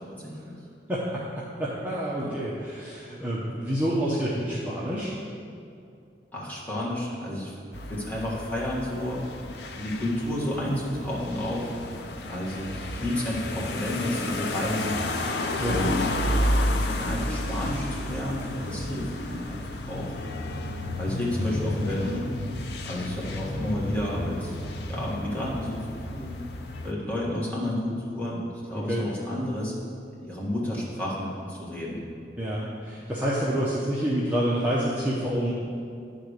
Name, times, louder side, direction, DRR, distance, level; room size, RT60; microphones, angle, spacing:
voice 1, 0.1-0.6 2.2-2.3 6.3-7.5 7.9-9.2 9.7-11.7 12.3-15.0 15.6-16.1 17.0-19.6 19.9-20.1 21.0-22.3 22.8-24.6 24.9-25.8 26.1-26.4 26.8-29.7 30.1-32.0, left 1 dB, 10° left, -7 dB, 1.5 m, -31 dB
voice 2, 0.9-5.1 15.6-15.9 28.7-29.0 32.4-35.5, equal, 10° right, -7 dB, 0.7 m, -28 dB
sound 1, 7.7-26.9, left 1 dB, 70° left, 0.6 m, -31 dB
9.7 x 3.9 x 6.5 m, 2.4 s
head